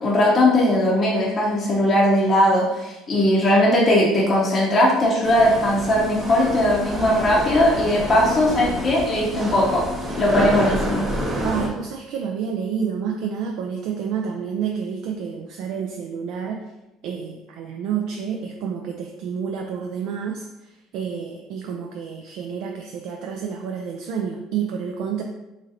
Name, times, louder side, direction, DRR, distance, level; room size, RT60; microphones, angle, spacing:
voice 1, 0.0-9.8 10.2-11.0, left 1 dB, 25° left, -4 dB, 0.6 m, -19 dB
sound 1, 5.2-11.7, equal, 15° right, 0.6 m, -28 dB
voice 2, 11.4-16.6 17.0-20.4 20.9-25.2, right 7 dB, 60° right, 2 dB, 0.3 m, -29 dB
3.7 x 3.1 x 2.8 m, 0.99 s
cardioid pair, 155°, 0 cm